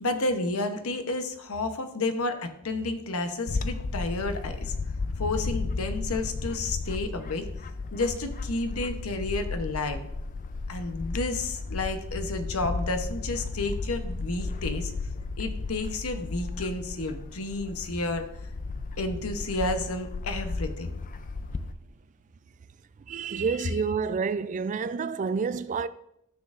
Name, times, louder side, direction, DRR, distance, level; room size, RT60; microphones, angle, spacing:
voice 1, 0.0-4.7 5.2-7.5 7.9-10.0 10.7-14.9 15.4-18.3 19.0-20.9, left 2 dB, 75° left, 0.9 m, -31 dB
Bird / Wind, 3.5-21.7, left 3 dB, 40° left, 0.4 m, -34 dB
voice 2, 23.1-25.9, right 5 dB, 35° right, 0.3 m, -29 dB
13.0 x 6.3 x 2.5 m
head